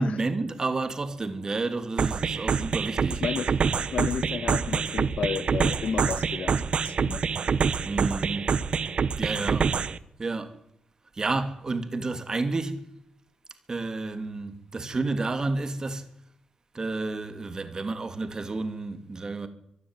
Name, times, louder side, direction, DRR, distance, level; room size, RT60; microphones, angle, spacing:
voice 1, 0.0-3.2 5.6-5.7 7.8-8.5 9.2-9.8 10.2-10.6 11.1-12.8 13.7-16.1 16.7-19.5, right 3 dB, 30° right, 2.9 m, -30 dB
sound 1, 2.0-10.0, right 6 dB, 50° right, 1.0 m, -26 dB
voice 2, 3.9-7.2, left 6 dB, 65° left, 1.5 m, -32 dB
24.5 x 11.0 x 9.9 m
wide cardioid pair, 120°, 2 cm